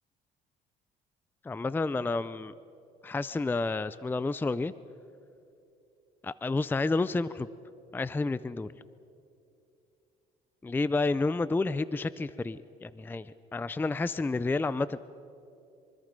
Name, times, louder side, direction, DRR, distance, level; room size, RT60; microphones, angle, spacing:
voice 1, 1.4-2.5 3.0-4.7 6.2-7.5 7.9-8.7 10.6-15.0, left 3 dB, 10° left, 16 dB, 0.4 m, -30 dB
25.5 x 24.0 x 5.3 m, 2.6 s
cardioid pair, 110°, 17 cm